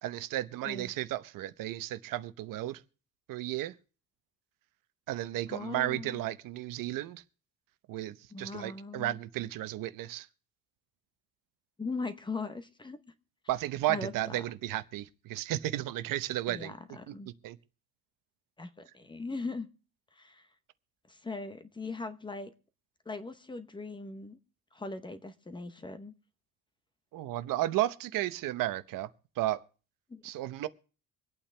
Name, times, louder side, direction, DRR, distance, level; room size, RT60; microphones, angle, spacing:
voice 1, 0.0-2.8 3.3-3.7 5.1-7.2 7.9-10.3 13.5-16.7 17.1-17.2 17.4-17.6 27.1-29.1 29.4-29.6 30.2-30.7, right 15 dB, 70° right, 0.9 m, -33 dB
voice 2, 5.5-6.2 8.3-9.2 11.8-13.0 13.9-14.4 16.5-17.3 18.6-19.7 20.1-20.5 21.1-22.5 23.1-24.4 24.7-26.1 30.1-30.2, left 3 dB, 15° left, 0.8 m, -40 dB
24.5 x 8.8 x 3.3 m
cardioid pair, 175°, 35 cm